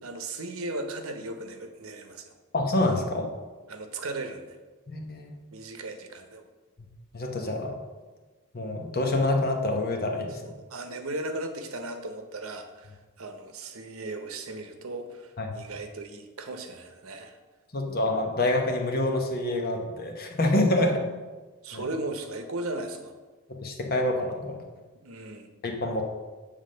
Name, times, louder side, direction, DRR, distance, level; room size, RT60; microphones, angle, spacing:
voice 1, 0.0-2.3 3.7-4.6 5.5-6.4 10.4-17.4 20.8-20.9 21.6-23.2 25.0-25.5, right 2 dB, 75° right, 6 dB, 0.8 m, -36 dB
voice 2, 2.5-3.3 4.9-5.3 7.1-7.8 8.5-10.5 15.4-15.6 17.7-20.9 21.7-21.8 23.5-24.6 25.6-26.0, left 2 dB, 45° left, 2 dB, 1.0 m, -27 dB
7.3 x 3.6 x 6.4 m, 1.3 s
head